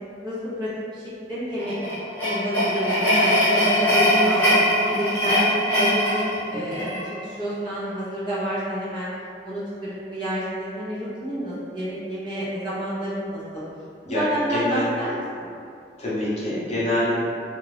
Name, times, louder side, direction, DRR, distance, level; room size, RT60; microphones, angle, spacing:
voice 1, 0.2-1.0 1.3-1.7 2.3-5.4 5.8-9.1 9.4-13.6 14.0-15.5, right 1 dB, 25° right, -12 dB, 0.9 m, -29 dB
sound 1, 1.5-7.1, equal, 10° left, 1.1 m, -21 dB
voice 2, 14.1-14.8 16.0-17.1, left 1 dB, 35° left, -10 dB, 0.8 m, -25 dB
2.5 x 2.4 x 3.3 m, 2.5 s
head